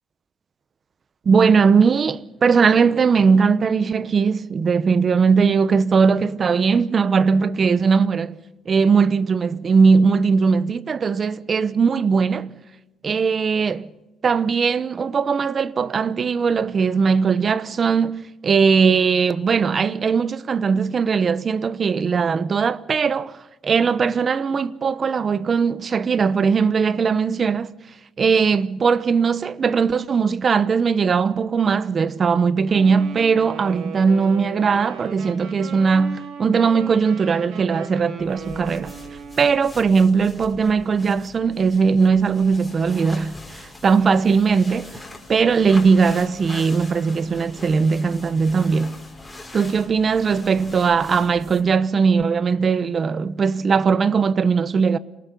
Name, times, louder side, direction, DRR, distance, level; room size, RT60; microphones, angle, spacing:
voice 1, 1.2-8.4 8.7-12.6 13.0-13.9 14.2-23.4 23.6-27.7 28.2-38.9 39.4-45.0 45.3-49.0 49.5-55.0, right 5 dB, 40° right, 0.9 m, -19 dB
Wind instrument woodwind instrument, 32.7-39.6, right 6 dB, 80° right, 4.2 m, -37 dB
sound 1, 38.2-51.8, left 2 dB, 10° left, 5.5 m, -42 dB
27.0 x 19.5 x 5.4 m
cardioid pair, 105°, 0 cm